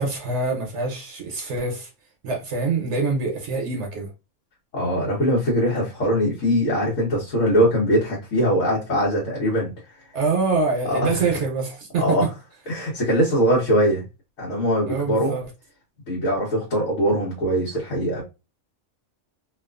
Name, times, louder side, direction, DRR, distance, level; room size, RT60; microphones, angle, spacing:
voice 1, 0.0-1.9 2.2-4.1 10.1-12.3 14.9-15.5, right 4 dB, 65° right, 0.9 m, -25 dB
voice 2, 4.7-9.7 10.9-11.1 12.0-12.3 12.7-14.0 14.4-15.4 16.1-18.2, equal, 80° left, 1.3 m, -21 dB
2.9 x 2.3 x 2.3 m
omnidirectional pair, 1.3 m